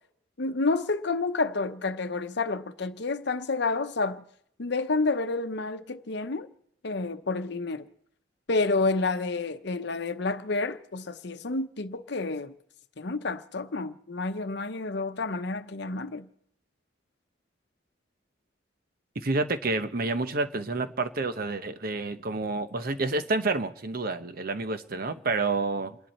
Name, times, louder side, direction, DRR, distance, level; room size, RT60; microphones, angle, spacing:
voice 1, 0.4-4.2 4.6-6.5 6.8-7.9 8.5-12.5 13.0-16.3, left 3 dB, 65° left, 0.8 m, -29 dB
voice 2, 19.2-26.0, right 3 dB, 50° right, 0.9 m, -29 dB
29.0 x 11.0 x 4.3 m
head